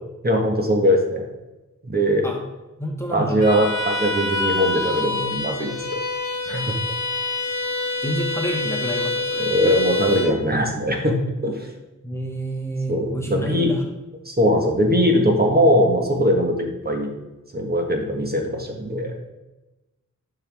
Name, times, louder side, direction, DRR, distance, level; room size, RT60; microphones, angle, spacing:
voice 1, 0.2-1.2 1.8-2.2 3.1-5.8 6.5-6.7 9.4-11.2 11.4-11.7 12.9-13.7 14.2-17.1 17.5-19.1, equal, 30° right, 1 dB, 1.5 m, -20 dB
voice 2, 2.8-3.4 8.0-9.5 12.0-13.8, equal, 10° left, 0 dB, 1.2 m, -28 dB
Bowed string instrument, 3.4-10.4, left 2 dB, 65° left, 1.3 m, -26 dB
10.5 x 6.0 x 3.5 m, 1.0 s
wide cardioid pair, 90°, 31 cm